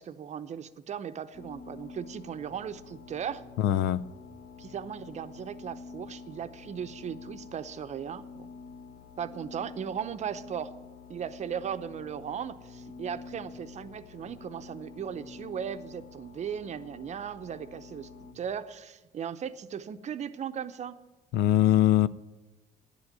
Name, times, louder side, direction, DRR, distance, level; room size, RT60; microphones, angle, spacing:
voice 1, 0.0-3.4 4.6-8.2 9.2-10.7 11.1-18.1 18.3-21.0, right 8 dB, 40° right, 0.7 m, -37 dB
sound 1, 1.3-18.3, left 4 dB, 40° left, 1.3 m, -48 dB
voice 2, 3.6-4.0 21.3-22.1, left 13 dB, 80° left, 0.5 m, -22 dB
10.5 x 8.1 x 9.3 m
cardioid pair, 110°, 17 cm